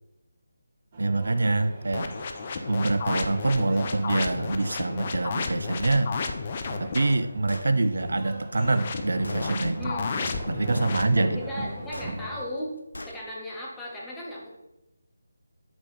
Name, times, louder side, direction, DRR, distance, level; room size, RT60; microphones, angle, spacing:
sound 1, 0.9-12.4, right 1 dB, 35° right, 1.4 m, -40 dB
voice 1, 1.0-2.2 2.7-6.1 6.8-9.9 10.5-11.4, right 2 dB, 65° right, 11 dB, 0.4 m, -25 dB
sound 2, 1.9-7.2 8.5-11.0, left 4 dB, 35° left, 0.6 m, -32 dB
Gunshot gunfire, 7.5-7.7 8.6-8.7 9.2-9.5 11.9-12.1 12.9-13.2, left 1 dB, 80° left, 0.8 m, -39 dB
voice 2, 9.8-10.1 11.2-12.7 13.0-14.5, left 1 dB, 5° left, -5 dB, 1.4 m, -36 dB
8.1 x 3.9 x 4.2 m, 0.91 s
figure-of-eight pair, 155°, 0 cm